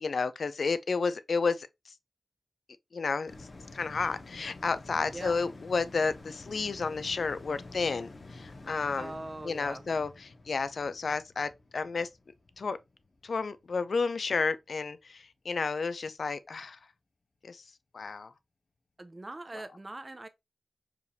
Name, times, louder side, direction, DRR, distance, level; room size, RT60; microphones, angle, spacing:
voice 1, 0.0-1.7 2.9-3.3 3.7-9.1 9.4-12.1 12.6-12.8 13.2-16.8 17.4-17.6 17.9-18.3, left 4 dB, 75° left, 0.4 m, -31 dB
sound 1, 3.3-14.0 14.4-14.5, left 2 dB, 55° left, 0.9 m, -49 dB
voice 2, 9.0-9.9 19.0-20.3, right 2 dB, 30° right, 0.6 m, -42 dB
4.8 x 3.3 x 2.8 m
wide cardioid pair, 85°, 0 cm